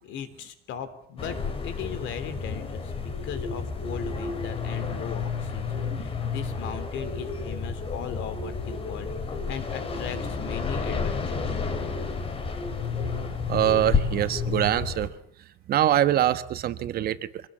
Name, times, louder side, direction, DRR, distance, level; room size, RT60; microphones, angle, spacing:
voice 1, 0.0-1.4 1.6-11.6, left 8 dB, 65° left, 11 dB, 3.4 m, -38 dB
sound 1, 1.2-15.1, left 5 dB, 25° left, 2.9 m, -31 dB
voice 2, 13.5-15.1 15.7-17.5, right 12 dB, 50° right, 13 dB, 1.2 m, -24 dB
25.5 x 19.0 x 8.6 m, 0.65 s
cardioid pair, 175°, 20 cm